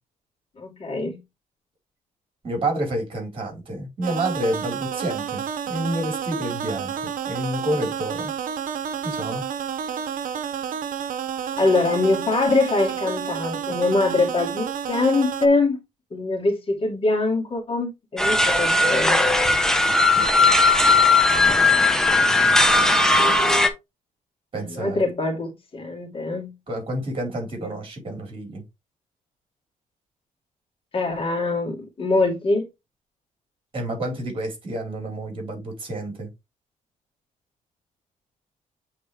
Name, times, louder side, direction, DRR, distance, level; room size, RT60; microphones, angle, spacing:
voice 1, 0.6-1.2 11.6-15.8 16.1-19.3 21.3-22.4 24.5-26.6 27.6-27.8 30.9-32.7, left 3 dB, 40° left, 2.4 m, -24 dB
voice 2, 2.4-8.3 9.0-9.5 20.2-20.3 24.5-25.0 26.7-28.6 33.7-36.3, right 1 dB, 40° right, 4.5 m, -29 dB
sound 1, 4.0-15.5, right 8 dB, 75° right, 0.8 m, -30 dB
sound 2, 18.2-23.7, left 2 dB, 5° left, 1.1 m, -18 dB
8.2 x 4.2 x 3.4 m
cardioid pair, 110°, 14 cm